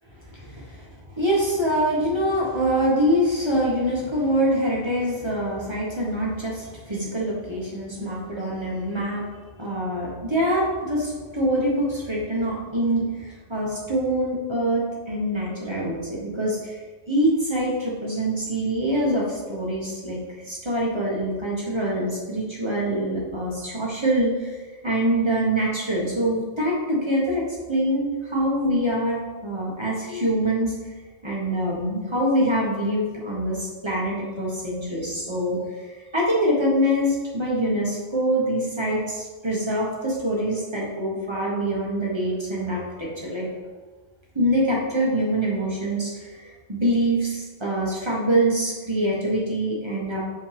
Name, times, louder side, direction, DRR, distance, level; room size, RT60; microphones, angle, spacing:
voice 1, 0.3-0.9 1.1-9.2 9.6-16.8 17.1-20.2 20.4-24.6 24.8-30.7 31.2-35.6 35.8-43.5 44.3-50.2, right 1 dB, 20° right, -4 dB, 1.5 m, -24 dB
7.7 x 4.2 x 3.5 m, 1.3 s
omnidirectional pair, 1.3 m